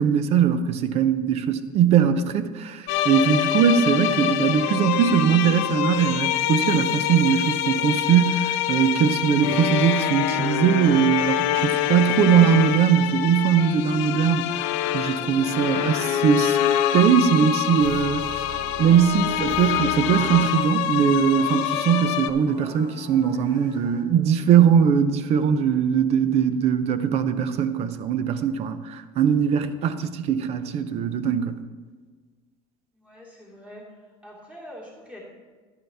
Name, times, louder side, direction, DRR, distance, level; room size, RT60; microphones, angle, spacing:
voice 1, 0.0-14.4 14.9-16.6 16.9-31.6, right 8 dB, 40° right, 12 dB, 0.6 m, -21 dB
sound 1, 2.9-22.3, left 11 dB, 70° left, 0.6 m, -25 dB
sound 2, 17.8-24.0, right 2 dB, 25° right, 2.5 m, -41 dB
voice 2, 32.9-35.2, equal, 10° right, -4 dB, 2.5 m, -44 dB
11.0 x 9.5 x 3.5 m, 1.5 s
cardioid pair, 150°, 16 cm